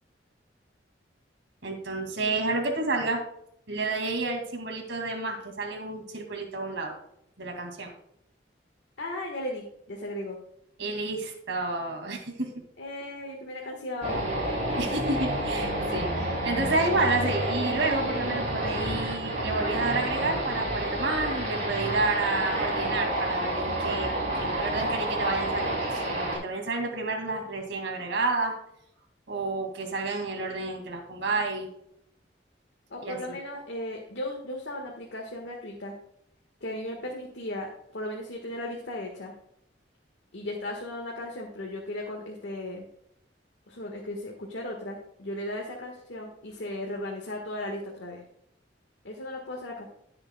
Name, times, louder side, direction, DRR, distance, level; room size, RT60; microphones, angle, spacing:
voice 1, 1.6-3.2 3.7-6.9 7.4-7.9 10.8-12.5 14.8-28.5 29.3-31.7 33.0-33.2, right 3 dB, 85° right, 2 dB, 2.3 m, -30 dB
voice 2, 9.0-10.4 12.8-14.4 32.9-35.9 36.6-39.3 40.3-42.9 43.7-48.2 49.0-49.9, left 1 dB, 75° left, -1 dB, 1.5 m, -36 dB
sound 1, 14.0-26.4, right 1 dB, 45° right, 4.4 m, -29 dB
19.5 x 6.9 x 2.3 m, 0.73 s
head